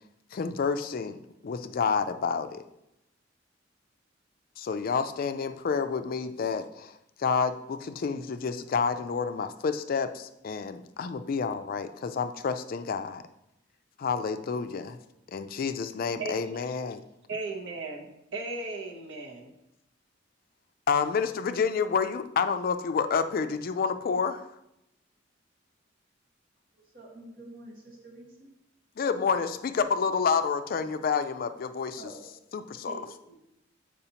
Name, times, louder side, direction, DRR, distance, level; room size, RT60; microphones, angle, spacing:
voice 1, 0.3-2.6 4.6-13.2 14.0-15.0 15.3-17.0 20.9-24.4 29.0-32.1 32.5-32.9, left 5 dB, 50° left, 10 dB, 0.3 m, -29 dB
voice 2, 16.2-16.6 17.3-19.5, right 3 dB, 75° right, 0 dB, 0.8 m, -36 dB
voice 3, 26.7-28.5 32.0-32.2 32.9-33.3, right 1 dB, 50° right, -2 dB, 1.6 m, -47 dB
6.7 x 4.9 x 2.9 m, 0.85 s
head